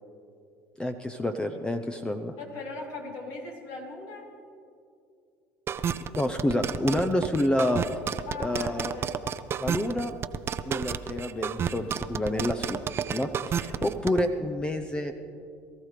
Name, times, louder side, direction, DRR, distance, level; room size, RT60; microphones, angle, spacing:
voice 1, 0.8-2.4 6.1-7.8 8.4-8.9 9.6-10.1 10.6-12.8 13.1-15.1, left 1 dB, 15° left, 7 dB, 0.7 m, -28 dB
voice 2, 2.4-4.3 8.2-9.2, left 3 dB, 70° left, -1 dB, 3.2 m, -39 dB
sound 1, 5.7-14.2, right 8 dB, 40° right, 0.6 m, -30 dB
22.0 x 14.0 x 3.4 m, 2.5 s
hypercardioid pair, 80°, 6 cm